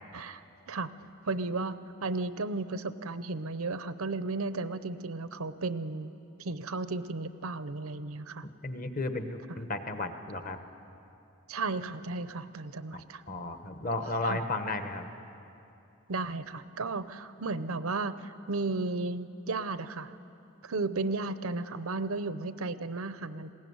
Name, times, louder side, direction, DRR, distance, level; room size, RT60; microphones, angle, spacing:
voice 1, 0.7-6.1 6.4-8.5 11.5-13.2 14.2-14.4 16.1-20.1 20.6-23.5, right 3 dB, 90° right, 13 dB, 0.8 m, -34 dB
voice 2, 8.6-10.6 13.3-15.1, left 2 dB, 40° left, 8 dB, 1.2 m, -33 dB
20.5 x 16.5 x 9.6 m, 2.8 s
head